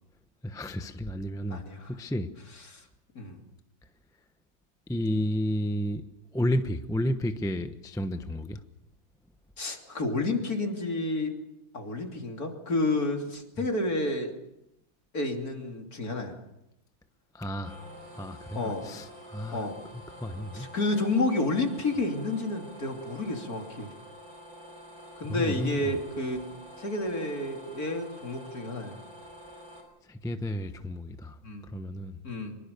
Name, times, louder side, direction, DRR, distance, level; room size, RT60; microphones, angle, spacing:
voice 1, 0.4-1.6 1.9-2.3 4.9-6.0 6.3-8.6 17.3-19.7 19.9-20.7 25.3-25.9 30.0-32.2, left 1 dB, 5° left, 8 dB, 0.6 m, -32 dB
voice 2, 1.5-1.9 2.7-2.8 3.2-3.4 9.6-11.3 11.7-14.3 15.1-16.4 18.5-18.9 19.5-19.8 20.5-23.9 25.2-26.5 26.8-29.0 31.4-31.7 32.2-32.6, left 2 dB, 45° left, 3 dB, 3.5 m, -30 dB
sound 1, 17.6-29.8, equal, 75° right, 5.8 m, -48 dB
25.0 x 23.0 x 6.9 m, 0.86 s
omnidirectional pair, 2.2 m